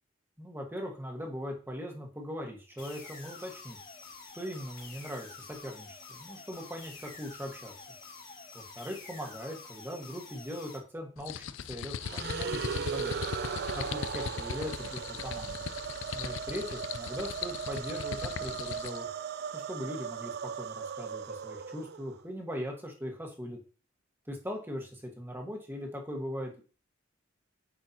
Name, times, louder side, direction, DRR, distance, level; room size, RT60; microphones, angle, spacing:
voice 1, 0.4-3.8 4.3-7.7 8.5-12.6 12.9-13.2 13.7-15.6 16.1-19.0 19.5-23.6 24.3-26.6, equal, 10° right, 1 dB, 1.6 m, -40 dB
sound 1, 2.8-10.8, left 4 dB, 40° left, 2.8 m, -48 dB
sound 2, 11.2-19.0, left 7 dB, 75° left, 0.4 m, -39 dB
sound 3, 12.0-22.2, right 6 dB, 55° right, 0.4 m, -37 dB
9.3 x 6.7 x 2.9 m, 0.37 s
head